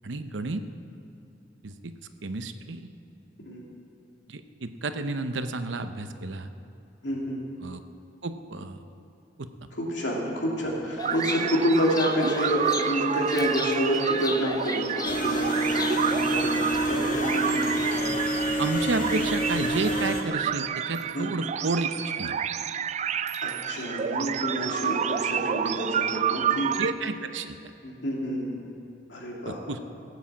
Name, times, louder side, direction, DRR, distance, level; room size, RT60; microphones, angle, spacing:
voice 1, 0.0-0.6 1.6-1.9 2.2-2.9 4.3-6.5 7.6-7.8 8.2-8.8 9.4-9.5 18.6-21.9 22.2-22.4 26.7-27.6 29.5-29.8, right 3 dB, 85° right, 9 dB, 0.8 m, -31 dB
voice 2, 7.0-7.4 9.7-18.0 19.1-19.2 21.1-21.3 23.4-26.7 27.8-28.6 29.1-29.6, equal, 75° left, -2 dB, 2.9 m, -28 dB
Chirp tweet, 11.0-16.8, left 4 dB, 20° left, 0.5 m, -37 dB
sound 1, 11.0-26.9, right 8 dB, 40° right, 0.3 m, -30 dB
sound 2, 15.0-20.2, right 1 dB, 45° left, 1.7 m, -27 dB
17.0 x 8.2 x 7.4 m, 2.6 s
head